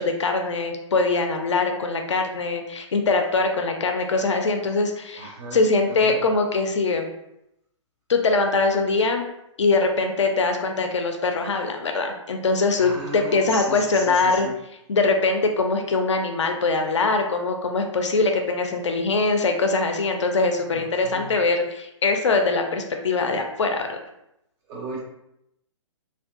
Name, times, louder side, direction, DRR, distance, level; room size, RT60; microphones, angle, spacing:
voice 1, 0.0-7.1 8.1-9.2 9.6-14.5 14.9-24.0, left 3 dB, 65° left, 4 dB, 0.4 m, -22 dB
voice 2, 5.2-5.6 5.9-6.2 12.8-14.5 20.7-21.3 24.7-25.0, right 2 dB, 20° right, -2 dB, 0.4 m, -36 dB
2.6 x 2.3 x 2.3 m, 0.83 s
figure-of-eight pair, 130°, 16 cm